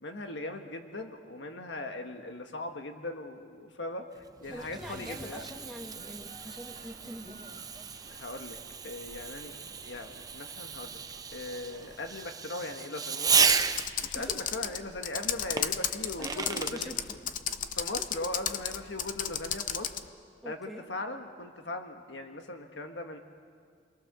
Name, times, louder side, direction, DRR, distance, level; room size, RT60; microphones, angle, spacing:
voice 1, 0.0-5.4 8.1-8.6 8.8-11.0 11.3-13.3 14.0-16.9 17.7-19.9 20.4-23.2, left 2 dB, 80° left, 5 dB, 1.6 m, -39 dB
Fireworks, 4.2-14.1 15.6-16.8, right 6 dB, 20° right, 0.7 m, -33 dB
sound 1, 4.4-12.3, right 3 dB, 50° right, 1.9 m, -53 dB
voice 2, 4.5-7.4 14.1-14.4 16.2-17.0 17.7-17.8 20.4-20.8, equal, ahead, 0 dB, 2.0 m, -44 dB
Computer keyboard, 13.3-20.1, left 9 dB, 45° left, 0.8 m, -34 dB
28.5 x 22.5 x 6.9 m, 2.1 s
head